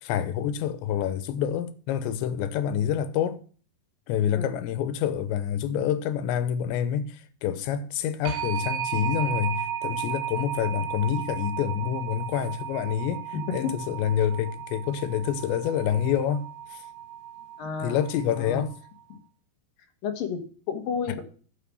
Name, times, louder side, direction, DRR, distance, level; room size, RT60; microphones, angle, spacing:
voice 1, 0.0-3.4 4.1-13.2 13.5-16.5 16.7-16.8 17.8-18.7, left 9 dB, 90° left, 3.2 m, -27 dB
sound 1, 8.3-18.9, right 10 dB, 80° right, 3.2 m, -35 dB
voice 2, 13.3-13.7 17.6-18.0 18.4-18.6 20.0-20.4 20.7-21.2, left 6 dB, 65° left, 2.7 m, -30 dB
9.1 x 7.6 x 6.0 m
omnidirectional pair, 5.0 m